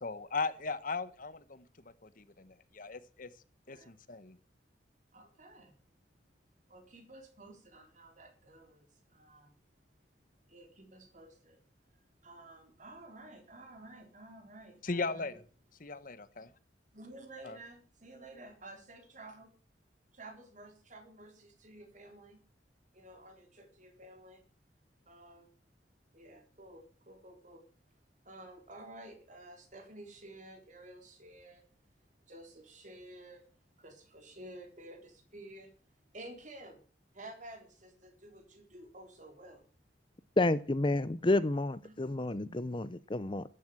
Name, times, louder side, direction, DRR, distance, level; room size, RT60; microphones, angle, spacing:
voice 1, 0.0-3.3 3.7-4.4 14.8-15.4 15.8-16.5 17.4-17.6, left 4 dB, 50° left, 1.2 m, -38 dB
voice 2, 5.1-5.7 6.7-9.6 10.5-11.6 12.2-15.3 16.9-19.5 20.1-22.4 22.9-24.4 25.1-25.5 26.1-27.6 28.2-31.7 32.3-33.5 33.8-35.7 36.1-36.8 37.1-39.6 41.8-42.0, right 1 dB, 45° right, 3.9 m, -52 dB
voice 3, 40.4-43.4, left 2 dB, 25° left, 0.6 m, -30 dB
14.0 x 11.0 x 7.8 m
head